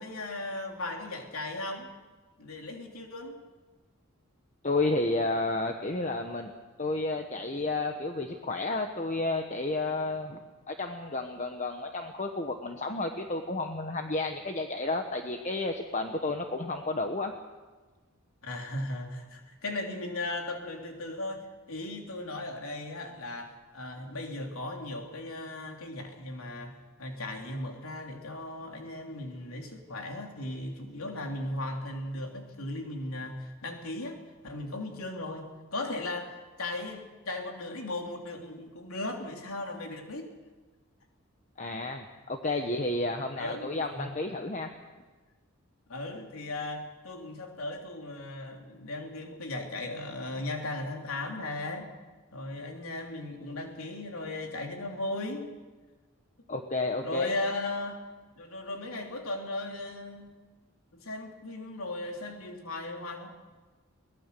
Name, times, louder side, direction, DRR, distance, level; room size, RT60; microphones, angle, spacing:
voice 1, 0.0-1.9 2.4-3.4 18.4-40.3 43.3-44.2 45.9-51.9 52.3-55.5 57.0-58.0 58.3-60.3 60.9-63.3, left 2 dB, 80° left, 2 dB, 3.3 m, -37 dB
voice 2, 4.6-6.5 6.8-17.3 41.6-44.7 56.5-57.3, left 2 dB, 35° left, 5 dB, 1.1 m, -31 dB
23.5 x 18.5 x 6.8 m, 1.3 s
head